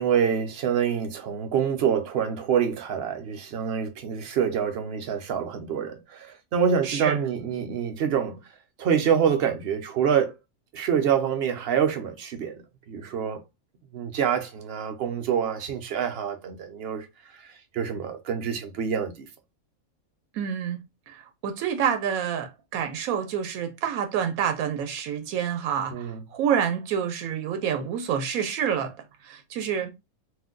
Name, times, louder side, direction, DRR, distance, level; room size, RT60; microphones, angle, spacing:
voice 1, 0.0-8.5 8.8-10.3 10.7-12.6 12.9-13.4 13.9-17.1 17.4-19.3 25.9-26.2, right 7 dB, 60° right, 0.7 m, -26 dB
voice 2, 6.8-7.2 20.3-20.8 21.1-29.9, right 8 dB, 85° right, 1.1 m, -28 dB
2.6 x 2.2 x 3.6 m
omnidirectional pair, 1.5 m